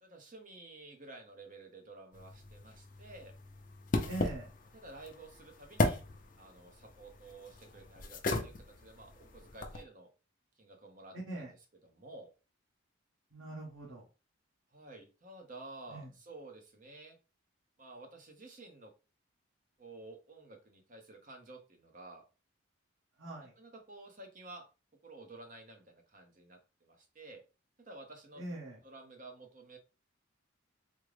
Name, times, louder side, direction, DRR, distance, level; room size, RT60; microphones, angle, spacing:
voice 1, 0.0-3.3 4.7-6.0 6.4-10.1 10.6-11.6 11.8-12.3 14.7-17.2 17.8-18.9 19.8-22.2 23.6-24.6 25.0-27.4 27.8-28.4 28.8-29.8, right 2 dB, 40° right, 4 dB, 0.7 m, -52 dB
sound 1, 2.1-9.8, left 2 dB, 40° left, 0.5 m, -37 dB
voice 2, 4.1-4.5 11.3-11.5 13.3-14.0 15.9-16.1 23.2-23.5 28.4-28.8, right 1 dB, 90° right, -5 dB, 1.1 m, -42 dB
3.7 x 2.1 x 3.2 m, 0.32 s
head